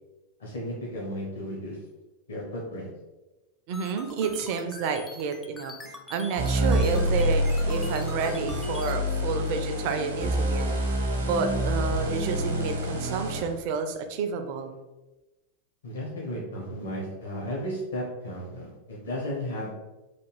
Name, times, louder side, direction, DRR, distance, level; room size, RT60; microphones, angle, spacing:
voice 1, 0.4-1.8 2.3-2.9 4.2-4.3 15.8-19.7, equal, 65° left, -3 dB, 0.9 m, -34 dB
sound 1, 3.7-8.9, left 2 dB, 15° left, 0.5 m, -44 dB
voice 2, 3.7-10.7 11.1-14.8, right 5 dB, 45° right, 6 dB, 0.4 m, -30 dB
sound 2, 6.4-13.5, equal, 70° right, 0.8 m, -27 dB
3.3 x 2.3 x 3.2 m, 1.1 s
figure-of-eight pair, 90°, 0 cm